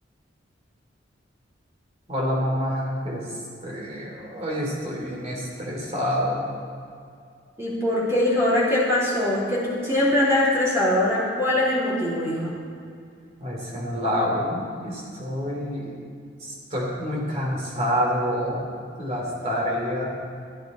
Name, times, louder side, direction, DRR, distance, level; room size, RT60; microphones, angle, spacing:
voice 1, 2.1-3.3 3.6-6.5 13.4-15.9 16.4-18.7 19.0-20.1, equal, 35° right, -3 dB, 3.0 m, -27 dB
voice 2, 7.6-12.6, left 1 dB, 15° right, -6 dB, 3.0 m, -22 dB
15.0 x 9.4 x 4.3 m, 2.3 s
head